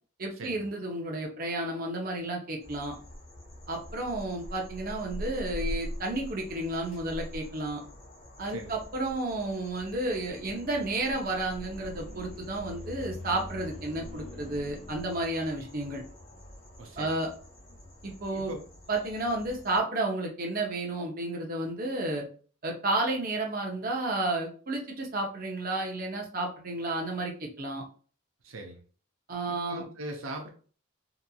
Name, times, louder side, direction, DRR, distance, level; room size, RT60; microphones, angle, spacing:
voice 1, 0.2-2.9 3.7-7.8 8.4-16.0 17.0-17.3 18.0-18.5 18.9-22.2 22.6-27.8 29.3-29.8, right 2 dB, 45° right, 0 dB, 0.7 m, -32 dB
sound 1, 2.6-19.8, equal, 30° left, 0.8 m, -43 dB
voice 2, 16.8-17.2 18.3-18.6 28.4-28.8 29.5-30.5, right 2 dB, 80° right, 3 dB, 0.5 m, -40 dB
2.9 x 2.5 x 2.2 m, 0.41 s
head